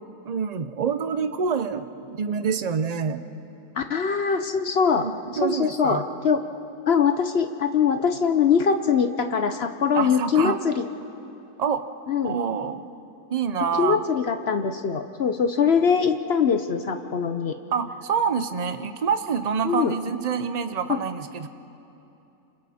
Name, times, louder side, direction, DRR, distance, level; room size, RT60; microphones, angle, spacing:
voice 1, 0.2-3.2 5.0-6.0 9.9-10.6 11.6-11.9 12.2-12.9 13.3-14.0 17.7-21.5, right 6 dB, 65° right, 10 dB, 0.4 m, -26 dB
voice 2, 3.8-5.1 5.4-6.4 6.9-10.9 12.1-12.3 13.8-17.5 19.6-19.9 20.9-21.0, left 6 dB, 55° left, 8 dB, 0.8 m, -22 dB
29.5 x 27.0 x 4.3 m, 2.9 s
omnidirectional pair, 1.7 m